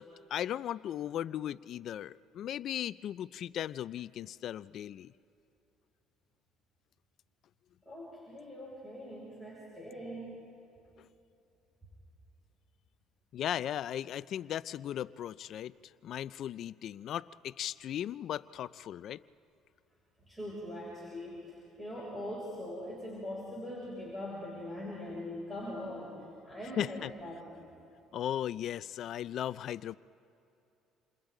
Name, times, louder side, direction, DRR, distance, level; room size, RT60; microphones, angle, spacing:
voice 1, 0.0-5.1 13.3-15.7 16.0-19.2 26.8-27.1 28.1-29.9, left 11 dB, 60° left, 17 dB, 0.4 m, -37 dB
voice 2, 7.8-10.4 20.3-27.6, left 1 dB, 5° right, -6 dB, 6.3 m, -42 dB
28.5 x 28.0 x 3.9 m, 2.8 s
cardioid pair, 110°, 0 cm